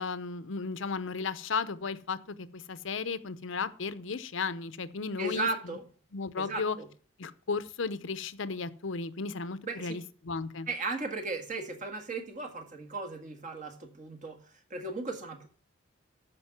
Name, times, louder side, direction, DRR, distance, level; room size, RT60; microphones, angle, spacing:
voice 1, 0.0-5.5 6.1-6.8 7.2-10.7, left 4 dB, 70° left, 14 dB, 0.7 m, -35 dB
voice 2, 5.2-5.9 6.4-6.9 9.6-10.0 10.7-14.4 14.7-15.5, right 2 dB, 35° right, 5 dB, 1.8 m, -36 dB
13.0 x 5.3 x 5.9 m, 0.42 s
head